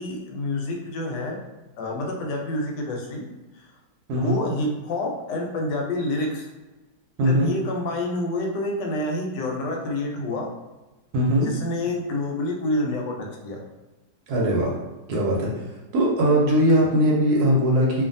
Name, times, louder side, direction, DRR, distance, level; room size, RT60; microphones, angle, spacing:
voice 1, 0.0-1.4 1.8-3.3 3.5-3.7 4.2-6.5 7.3-10.5 11.4-13.6, left 1 dB, 80° left, 1 dB, 1.2 m, -28 dB
voice 2, 4.1-4.4 7.2-7.5 11.1-11.5 14.3-14.7 15.1-15.6 15.9-18.0, equal, 70° right, -2 dB, 1.0 m, -20 dB
2.6 x 2.5 x 2.6 m, 1.1 s
omnidirectional pair, 1.9 m